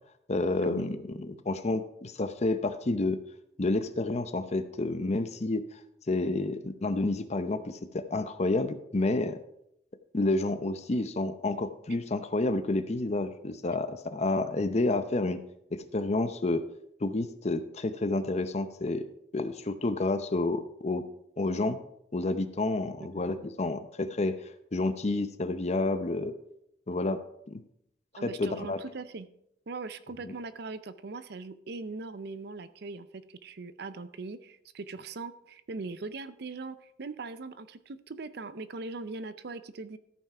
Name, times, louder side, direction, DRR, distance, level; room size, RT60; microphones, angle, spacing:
voice 1, 0.3-3.2 3.6-5.7 6.1-9.4 10.1-15.4 15.7-16.7 17.0-19.0 19.3-21.1 21.4-21.8 22.1-24.4 24.7-26.3 26.9-27.2 27.5-27.6 28.2-28.8 30.2-30.3, left 2 dB, 35° left, 11 dB, 0.6 m, -29 dB
voice 2, 28.2-29.3 29.7-40.0, right 3 dB, 60° right, 14 dB, 0.5 m, -40 dB
13.5 x 5.7 x 4.8 m, 0.76 s
head